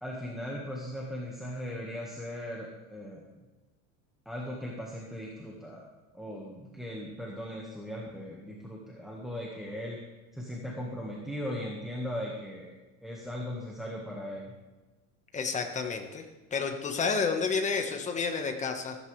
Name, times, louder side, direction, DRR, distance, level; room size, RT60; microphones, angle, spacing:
voice 1, 0.0-3.3 4.2-5.9 6.1-10.0 10.3-12.7 13.0-14.5, equal, ahead, -3 dB, 1.6 m, -38 dB
voice 2, 15.3-16.2 16.5-19.0, left 5 dB, 20° left, 4 dB, 1.4 m, -30 dB
15.0 x 14.5 x 3.3 m, 1.2 s
cardioid pair, 160°, 39 cm